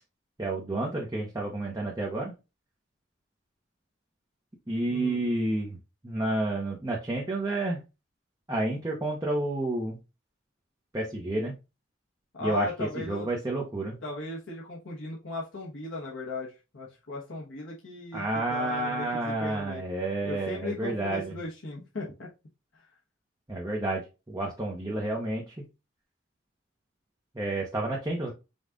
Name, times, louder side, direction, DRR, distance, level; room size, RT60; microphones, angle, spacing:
voice 1, 0.4-2.3 4.7-5.8 6.0-7.8 8.5-10.0 10.9-11.5 12.4-12.7 12.9-14.0 18.1-21.3 23.5-24.0 24.3-25.5 27.3-28.3, right 2 dB, 15° right, -2 dB, 0.8 m, -30 dB
voice 2, 4.9-5.3 12.3-13.3 14.0-19.8 20.2-22.3 22.7-22.9, left 2 dB, 80° left, -4 dB, 1.1 m, -37 dB
5.3 x 2.4 x 3.7 m, 0.27 s
head